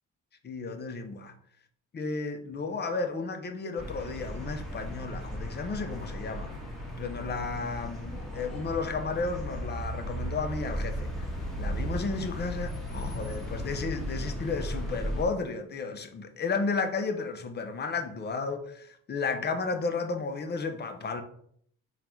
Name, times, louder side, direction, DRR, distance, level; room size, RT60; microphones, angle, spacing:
voice 1, 0.4-1.3 1.9-6.5 7.0-11.3 11.6-21.2, left 4 dB, 35° left, 0.6 m, -33 dB
sound 1, 3.8-15.3, equal, ahead, 1.2 m, -36 dB
3.8 x 2.4 x 4.3 m
cardioid pair, 90°, 30 cm